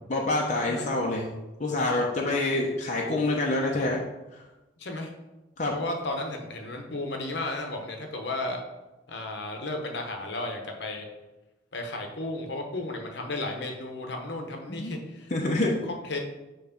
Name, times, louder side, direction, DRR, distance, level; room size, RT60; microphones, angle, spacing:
voice 1, 0.1-1.3 1.6-4.0 5.6-5.7 14.7-14.9 15.3-15.7, left 2 dB, 40° left, -2 dB, 0.8 m, -26 dB
voice 2, 4.8-5.1 5.7-8.6 9.1-11.1 11.7-16.2, left 2 dB, 65° left, 3 dB, 1.0 m, -34 dB
7.0 x 3.2 x 5.1 m, 1.1 s
head